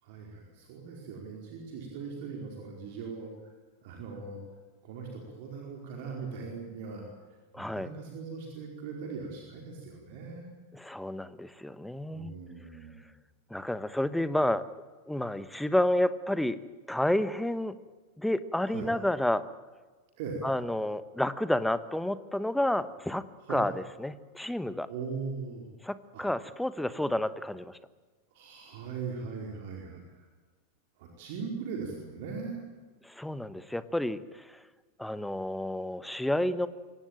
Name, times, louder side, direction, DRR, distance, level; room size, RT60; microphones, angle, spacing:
voice 1, 0.0-3.5 3.8-4.4 4.8-7.0 7.6-10.5 12.1-13.1 18.7-18.9 20.2-20.5 23.4-23.7 24.9-25.7 26.1-26.2 28.3-30.3 31.0-32.6, right 5 dB, 50° right, 1 dB, 4.7 m, -40 dB
voice 2, 7.5-7.9 10.7-12.3 13.5-14.6 15.1-16.6 16.9-17.7 18.2-19.4 20.4-23.2 23.5-23.7 24.0-24.9 25.8-27.8 33.0-34.6 35.0-36.7, left 1 dB, 5° left, 15 dB, 1.2 m, -30 dB
24.0 x 18.0 x 9.1 m, 1.4 s
figure-of-eight pair, 90°, 0 cm